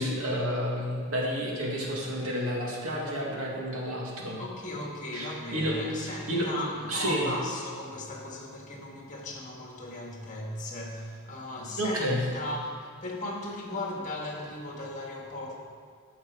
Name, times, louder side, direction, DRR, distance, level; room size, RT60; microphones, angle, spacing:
voice 1, 0.0-4.4 5.1-6.5 6.9-7.3 11.8-12.2, equal, 80° right, -2 dB, 2.2 m, -30 dB
voice 2, 4.4-15.5, left 1 dB, 35° left, -1 dB, 1.9 m, -37 dB
14.5 x 6.5 x 4.8 m, 2.1 s
head